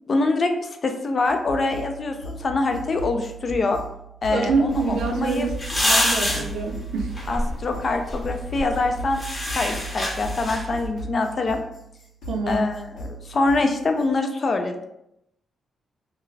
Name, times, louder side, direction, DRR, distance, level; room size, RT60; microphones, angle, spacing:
voice 1, 0.1-3.8 4.2-5.5 7.3-9.2 9.5-11.6 12.5-14.8, left 3 dB, 45° left, 5 dB, 0.4 m, -24 dB
sound 1, 1.2-14.1, right 1 dB, 85° left, 0.8 m, -37 dB
voice 2, 4.3-5.6 5.8-7.1 12.3-12.6, right 4 dB, 90° right, 3 dB, 0.4 m, -25 dB
sound 2, 4.7-10.9, left 1 dB, 25° left, 0.7 m, -28 dB
2.4 x 2.3 x 3.1 m, 0.79 s
cardioid pair, 80°, 0 cm